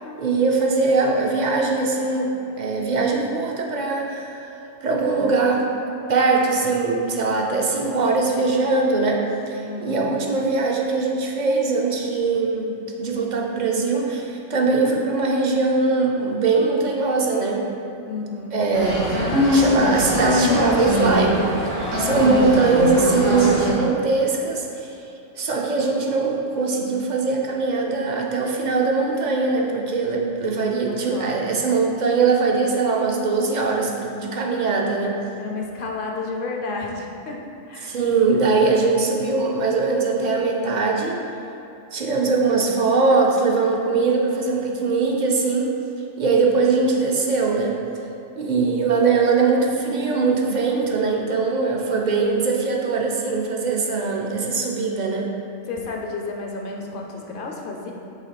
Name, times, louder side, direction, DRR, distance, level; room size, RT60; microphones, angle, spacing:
voice 1, 0.2-4.4 4.8-5.6 6.1-9.2 9.5-17.6 18.5-19.0 19.5-21.6 22.0-24.7 25.4-35.2 37.8-41.2 41.9-45.7 46.2-47.8 48.4-55.3, right 4 dB, 50° right, 0 dB, 0.6 m, -21 dB
voice 2, 9.6-10.2 18.1-18.6 30.9-31.4 35.3-37.4 37.7-38.0 55.7-57.9, left 3 dB, 55° left, 0 dB, 0.7 m, -31 dB
sound 1, 18.7-23.7, left 1 dB, 80° right, 1.7 m, -22 dB
5.7 x 3.6 x 4.9 m, 2.8 s
omnidirectional pair, 1.3 m